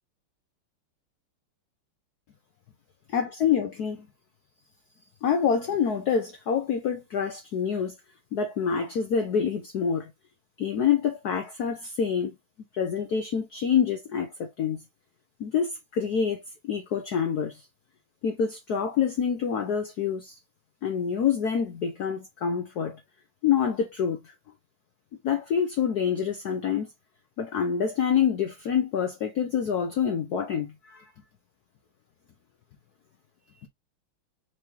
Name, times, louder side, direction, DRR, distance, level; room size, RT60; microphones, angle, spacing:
voice 1, 3.1-4.1 5.2-7.9 8.3-10.1 10.6-12.3 12.7-14.8 15.4-17.6 18.2-20.3 20.8-23.0 23.4-24.2 25.2-26.9 27.4-31.0, left 7 dB, 60° left, 1.1 m, -26 dB
4.7 x 3.2 x 2.7 m
omnidirectional pair, 2.4 m